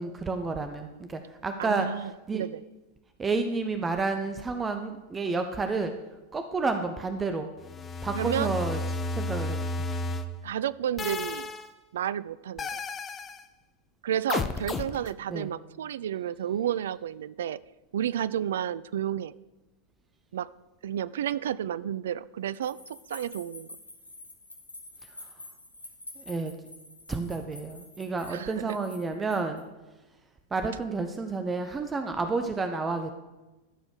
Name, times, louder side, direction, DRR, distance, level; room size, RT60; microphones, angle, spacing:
voice 1, 0.0-1.9 2.3-2.4 3.2-5.9 6.3-7.5 8.0-8.8 9.1-9.8 15.3-15.5 26.2-26.5 27.1-29.6 30.5-33.1, right 3 dB, 15° right, 7 dB, 0.7 m, -30 dB
voice 2, 1.6-2.6 8.2-8.5 10.4-11.5 11.9-12.8 14.0-17.6 17.9-19.3 20.3-20.5 20.8-22.8 23.1-23.8 28.3-28.8, right 10 dB, 60° right, 19 dB, 0.3 m, -31 dB
sound 1, 7.6-10.3 11.0-11.7 12.6-13.4 14.3-15.1, left 3 dB, 20° left, 0.6 m, -32 dB
sound 2, 22.6-29.6, left 2 dB, 80° left, 1.5 m, -48 dB
12.5 x 5.0 x 6.6 m, 1.1 s
figure-of-eight pair, 90°, 0 cm